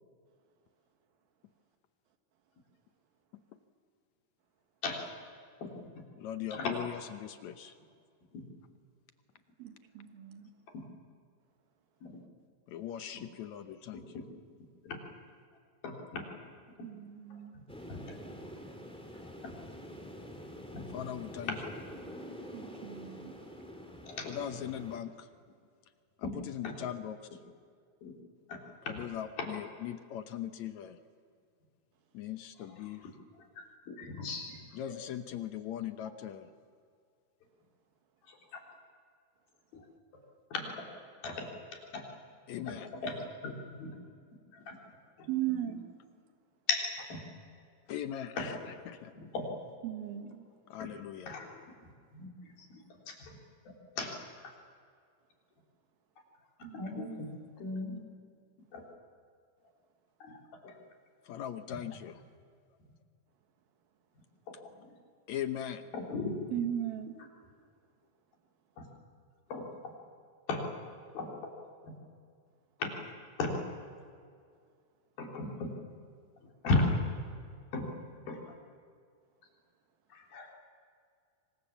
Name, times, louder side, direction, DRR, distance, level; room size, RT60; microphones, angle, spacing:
voice 1, 5.6-6.0 6.5-6.8 8.3-8.5 10.7-10.8 12.0-12.2 13.1-13.2 13.9-14.2 14.9-15.0 15.8-16.3 17.9-18.0 19.1-19.6 20.7-20.9 21.5-21.6 24.1-24.3 26.2-26.4 26.6-26.7 28.0-28.2 28.5-29.0 29.4-29.5 32.8-32.9 33.6-34.6 38.3-38.6 39.7-39.8 40.5-40.8 41.2-42.1 42.7-42.8 43.0-43.2 43.4-44.0 44.5-44.8 45.2-45.3 46.7-47.2 48.4-48.5 49.1-49.5 50.8-50.9 51.3-51.5 52.1-52.8 53.1-53.4 53.7-54.2 56.6-57.3 57.6-58.0 58.7-58.8 60.2-60.4 60.6-60.7 61.7-61.8 64.5-64.7 65.9-66.4 68.8-68.9 69.5-69.9 70.5-70.7 71.1-71.3 71.8-72.0 72.8-73.1 73.4-73.6 75.2-75.7 76.6-77.0 77.7-77.9 78.3-78.4 80.1-80.6, left 3 dB, 85° left, 0 dB, 5.4 m, -36 dB
voice 2, 6.2-7.8 12.7-14.2 20.9-21.6 24.2-25.3 26.2-27.3 28.9-31.0 32.1-33.1 34.7-36.5 42.5-42.9 47.9-48.6 48.9-49.1 50.7-51.4 61.3-62.2 65.3-65.8, left 10 dB, 70° left, 9 dB, 1.9 m, -40 dB
voice 3, 9.6-10.5 16.8-17.7 22.5-23.3 45.3-45.9 49.8-50.5 56.6-57.1 66.5-67.2, right 11 dB, 85° right, 5 dB, 3.5 m, -37 dB
sound 1, 17.7-25.0, equal, ahead, 2.1 m, -46 dB
26.5 x 24.5 x 7.3 m, 2.2 s
omnidirectional pair, 4.1 m